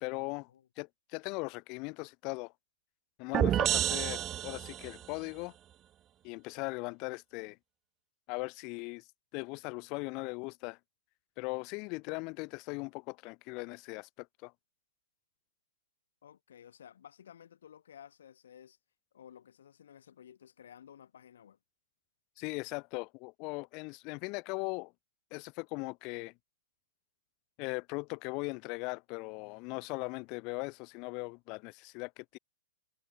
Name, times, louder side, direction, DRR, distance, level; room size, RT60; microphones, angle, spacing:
voice 1, 0.0-0.5 0.8-2.5 3.2-5.5 6.2-7.6 8.3-9.0 9.3-10.8 11.4-14.5 22.4-24.9 25.3-26.3 27.6-32.4, left 29 dB, 30° left, 0.6 m, -39 dB
sound 1, 3.3-5.0, right 11 dB, 20° right, 0.5 m, -29 dB
voice 2, 16.2-18.8 19.1-21.6, left 9 dB, 75° left, 5.1 m, -54 dB
hypercardioid pair, 160°, 0 cm